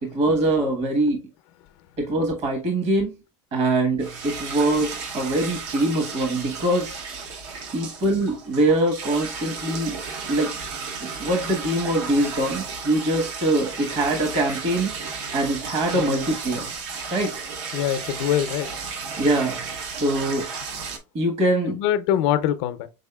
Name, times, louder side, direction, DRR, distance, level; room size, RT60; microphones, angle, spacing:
voice 1, 0.0-1.3 2.0-3.1 3.5-7.0 7.7-9.9 10.3-10.5 11.2-14.9 15.3-16.7 17.1-17.4 19.2-19.6 19.9-20.5 21.1-21.8, right 1 dB, 45° right, 1.1 m, -23 dB
sound 1, 4.0-21.0, right 5 dB, 75° right, 0.8 m, -34 dB
voice 2, 15.9-16.3 17.7-18.7 21.7-22.9, left 10 dB, 70° left, 0.5 m, -24 dB
5.4 x 3.6 x 2.2 m
supercardioid pair, 120°, 15 cm